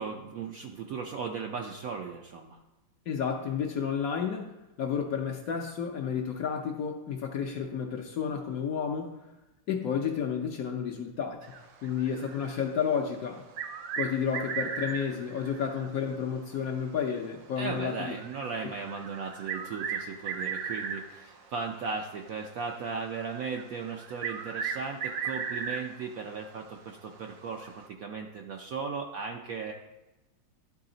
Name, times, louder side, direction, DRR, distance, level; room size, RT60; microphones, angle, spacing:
voice 1, 0.0-2.6 17.6-29.7, right 5 dB, 70° right, 2 dB, 0.8 m, -37 dB
voice 2, 3.1-4.5 4.8-9.2 9.7-11.5 11.8-13.4 14.0-18.1, left 7 dB, 65° left, 2 dB, 0.9 m, -31 dB
sound 1, 11.4-13.0 13.4-16.1 16.3-16.4 17.1-17.2 17.8-21.4 22.1-22.3 22.9-26.0 26.5-26.6 27.6-27.9, right 6 dB, 90° right, 1.4 m, -36 dB
11.0 x 4.1 x 3.8 m, 1.0 s
omnidirectional pair, 2.0 m